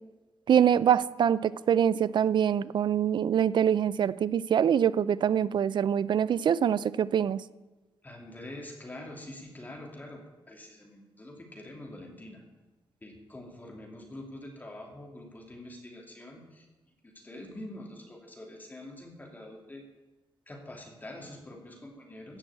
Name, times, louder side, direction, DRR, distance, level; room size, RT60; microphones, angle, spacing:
voice 1, 0.5-7.4, right 8 dB, 60° right, 18 dB, 0.5 m, -24 dB
voice 2, 8.0-12.4 13.0-16.7 17.0-19.8 20.5-22.4, left 1 dB, 20° left, 1 dB, 2.7 m, -45 dB
15.5 x 6.2 x 8.4 m, 1.2 s
cardioid pair, 115°, 9 cm